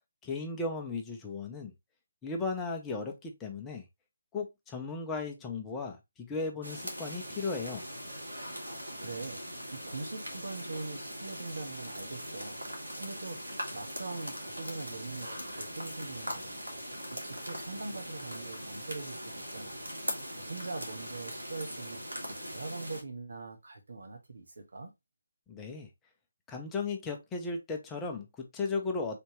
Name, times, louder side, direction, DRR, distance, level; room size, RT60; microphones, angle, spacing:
voice 1, 0.2-1.7 2.2-3.8 4.3-7.8 25.5-25.9 26.5-29.2, left 4 dB, 10° left, 0.7 m, -36 dB
sound 1, 6.6-23.0, equal, 85° right, 1.9 m, -41 dB
voice 2, 8.6-9.4 9.7-12.6 13.0-16.7 17.1-19.9 20.4-24.9, right 3 dB, 65° right, 1.3 m, -42 dB
4.3 x 3.5 x 3.0 m
figure-of-eight pair, 150°, 0 cm